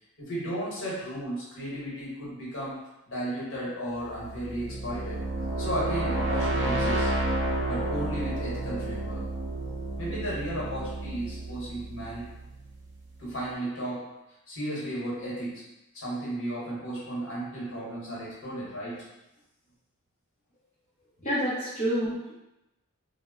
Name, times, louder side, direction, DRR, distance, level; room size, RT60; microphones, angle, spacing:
voice 1, 0.2-5.2 5.6-7.1 7.7-9.3 10.0-12.3 13.2-14.1 14.5-15.6 15.9-19.0, right 1 dB, 60° left, -7 dB, 1.1 m, -34 dB
sound 1, 4.1-12.9, right 2 dB, 50° right, 0.5 m, -31 dB
voice 2, 21.2-22.3, equal, 30° left, -11 dB, 0.6 m, -28 dB
2.0 x 2.0 x 3.5 m, 0.94 s
head